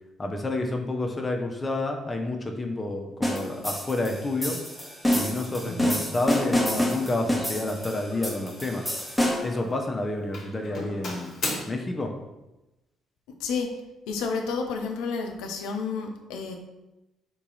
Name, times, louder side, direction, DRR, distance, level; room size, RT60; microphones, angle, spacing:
voice 1, 0.2-4.6 5.1-8.9 9.4-11.3 11.7-12.1, left 2 dB, 25° left, 3 dB, 0.7 m, -29 dB
sound 1, 3.2-9.6, left 1 dB, ahead, 1.0 m, -28 dB
Doorbell, 5.3-5.6 6.1-6.4 6.7-7.1 8.1-9.2 9.4-9.9 10.3-11.6, left 2 dB, 50° left, 0.9 m, -37 dB
voice 2, 5.7-6.0 13.4-13.8 14.1-16.6, left 5 dB, 65° left, 3 dB, 0.5 m, -31 dB
3.8 x 2.8 x 3.8 m, 0.99 s
figure-of-eight pair, 45°, 0 cm